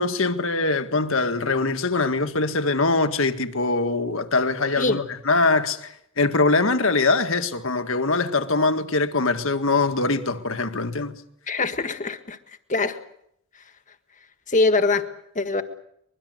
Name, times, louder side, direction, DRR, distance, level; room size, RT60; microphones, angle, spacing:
voice 1, 0.0-11.2, left 3 dB, 65° left, 1.8 m, -23 dB
voice 2, 11.5-12.4 12.7-13.0 14.5-15.0 15.3-15.6, left 3 dB, 35° left, 1.7 m, -22 dB
24.5 x 22.0 x 8.0 m
head